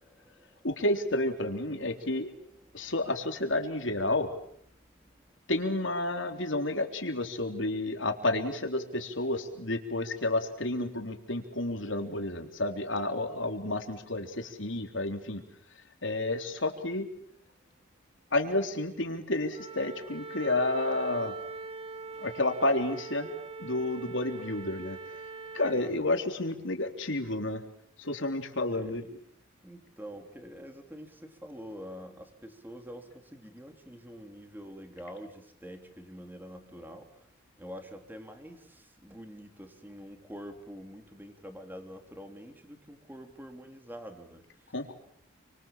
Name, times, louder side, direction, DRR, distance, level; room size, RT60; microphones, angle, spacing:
voice 1, 0.0-0.7 1.8-1.9 2.4-2.9 3.7-3.8 4.9-5.4 22.0-22.3 25.7-26.2 28.7-29.1 29.6-37.3 37.6-44.7, equal, 10° right, 5 dB, 3.4 m, -47 dB
voice 2, 0.6-2.3 2.7-4.3 5.5-15.4 16.0-17.1 18.3-21.3 22.2-23.3 23.6-25.0 25.5-27.6 28.0-29.0 44.7-44.9, left 2 dB, 65° left, 5 dB, 3.7 m, -30 dB
Wind instrument woodwind instrument, 19.5-25.8, right 4 dB, 30° right, 2.5 m, -42 dB
29.5 x 25.5 x 7.5 m, 0.69 s
head